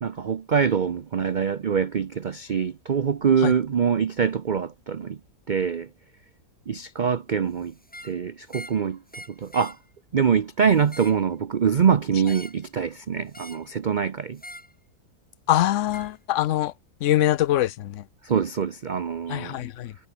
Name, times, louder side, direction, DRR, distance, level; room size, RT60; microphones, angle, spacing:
voice 1, 0.0-5.2 5.5-5.9 6.7-7.7 8.0-9.0 9.3-9.8 10.1-14.4 18.2-19.5, right 7 dB, 55° right, 0.5 m, -24 dB
sound 1, 7.8-8.2 8.5-8.8 9.1-9.8 10.7-11.2 12.2-12.6 13.3-13.7 14.4-14.7 15.9-16.1, equal, 5° left, 2.7 m, -43 dB
voice 2, 15.5-16.7 17.0-18.1 19.3-20.0, left 13 dB, 65° left, 0.8 m, -23 dB
omnidirectional pair, 1.7 m